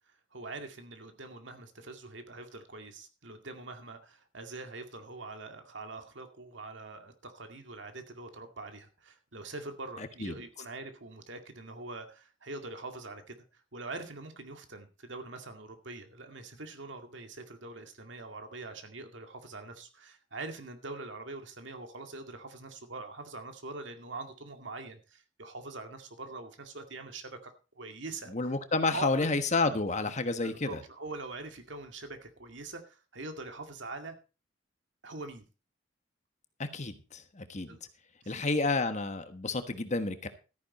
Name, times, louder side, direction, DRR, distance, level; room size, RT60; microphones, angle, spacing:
voice 1, 0.3-28.3 28.8-29.3 30.4-34.2 35.0-35.5 37.7-37.8 38.2-38.4, right 3 dB, 75° right, 6 dB, 2.1 m, -43 dB
voice 2, 28.3-30.8 36.6-37.8 38.3-40.3, left 3 dB, 40° left, 9 dB, 1.3 m, -30 dB
13.5 x 9.8 x 4.3 m, 0.32 s
head